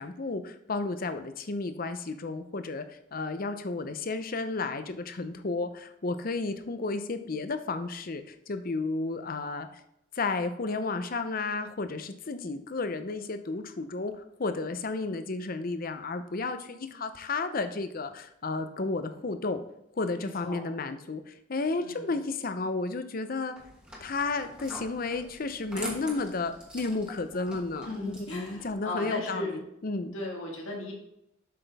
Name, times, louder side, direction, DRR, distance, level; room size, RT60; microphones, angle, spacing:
voice 1, 0.0-2.9 3.1-9.7 10.1-14.1 14.4-19.6 20.0-23.6 24.0-29.5 29.8-30.1, left 3 dB, 45° left, 9 dB, 0.6 m, -32 dB
voice 2, 20.1-20.6 21.8-22.0 27.9-29.6 30.1-30.9, left 2 dB, 85° left, -2 dB, 1.9 m, -36 dB
sound 1, 23.6-28.7, equal, 5° right, 1.3 m, -43 dB
7.7 x 6.0 x 3.4 m, 0.79 s
head